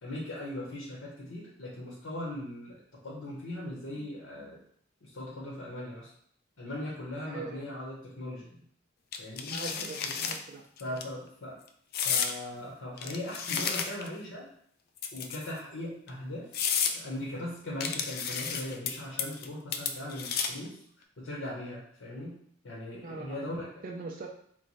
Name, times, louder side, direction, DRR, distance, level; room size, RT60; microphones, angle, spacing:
voice 1, 0.0-4.6 5.0-6.1 6.6-8.6 9.2-10.3 10.8-11.6 12.0-14.5 15.1-16.6 16.9-20.8 21.2-22.4 22.6-23.7, left 1 dB, 85° left, -5 dB, 0.9 m, -39 dB
voice 2, 7.2-7.7 9.5-10.9 23.0-23.4 23.8-24.3, right 3 dB, 45° right, 1 dB, 0.4 m, -41 dB
sound 1, 9.1-10.4 10.8-11.0 11.9-12.3 13.0-14.2 15.0-15.6 16.1-16.2 16.5-17.0 17.8-18.9 19.2-19.5 19.7-20.7, left 7 dB, 55° left, 0.3 m, -31 dB
3.0 x 2.1 x 4.0 m, 0.65 s
head